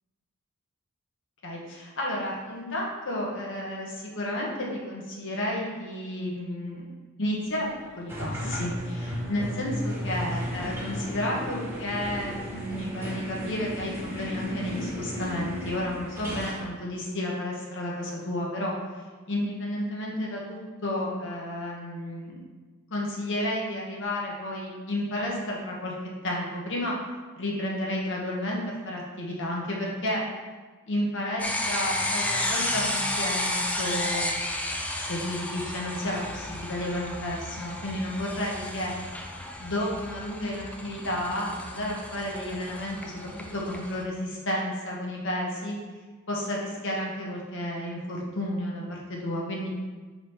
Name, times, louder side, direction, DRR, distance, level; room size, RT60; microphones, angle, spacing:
voice 1, 1.4-6.9 7.2-7.7 7.9-18.7 19.3-22.4 22.9-25.9 26.2-26.9 27.4-30.2 30.9-34.3 35.0-38.9 39.6-45.8 46.3-49.7, left 1 dB, 60° left, -3 dB, 1.4 m, -32 dB
sound 1, 8.1-16.7, equal, 10° right, 1.7 m, -34 dB
sound 2, 31.4-44.0, left 1 dB, 5° left, 0.4 m, -32 dB
5.1 x 3.9 x 5.7 m, 1.3 s
head